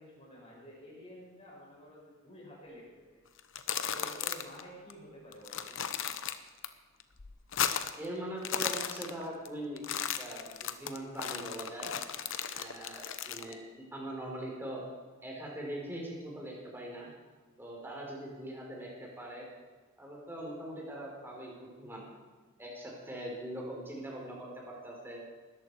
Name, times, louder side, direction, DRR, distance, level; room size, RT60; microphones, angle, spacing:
voice 1, 0.0-2.9 3.9-5.8, equal, 30° left, -5 dB, 7.0 m, -50 dB
sound 1, 3.4-4.6 4.9-5.0 5.3-6.7 7.0-8.1 8.3-9.5 9.8-13.5, left 8 dB, 65° left, 0.9 m, -35 dB
voice 2, 7.9-9.8 10.2-11.9 12.5-14.8 15.2-17.1 17.6-19.5 20.0-22.0 22.6-25.2, right 1 dB, 10° right, -2 dB, 4.1 m, -42 dB
20.0 x 13.5 x 4.8 m, 1.3 s
head